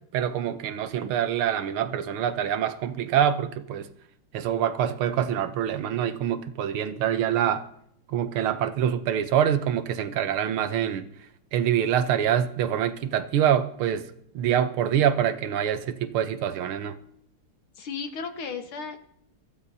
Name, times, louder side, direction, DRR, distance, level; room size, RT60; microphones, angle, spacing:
voice 1, 0.1-3.9 4.3-7.6 8.1-11.0 11.5-14.1 14.3-17.0, right 9 dB, 80° right, 11 dB, 1.7 m, -25 dB
voice 2, 17.8-19.0, left 5 dB, 75° left, 6 dB, 2.2 m, -34 dB
23.5 x 15.0 x 2.8 m, 0.72 s
omnidirectional pair, 2.4 m